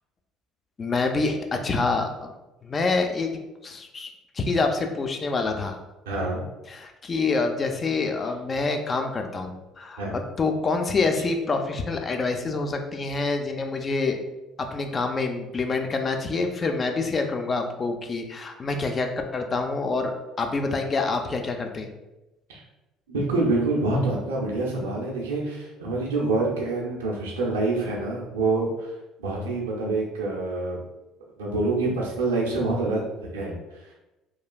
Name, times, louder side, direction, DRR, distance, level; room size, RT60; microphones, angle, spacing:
voice 1, 0.8-2.3 2.6-3.3 3.6-5.8 6.7-14.2 14.7-20.1 20.4-21.9, left 3 dB, 35° left, 5 dB, 0.4 m, -26 dB
voice 2, 6.1-6.4 10.0-10.1 22.5-22.6 23.1-30.8 31.4-33.9, right 2 dB, 85° right, -3 dB, 0.5 m, -26 dB
3.1 x 2.3 x 2.2 m, 1.0 s
hypercardioid pair, 60°, 0 cm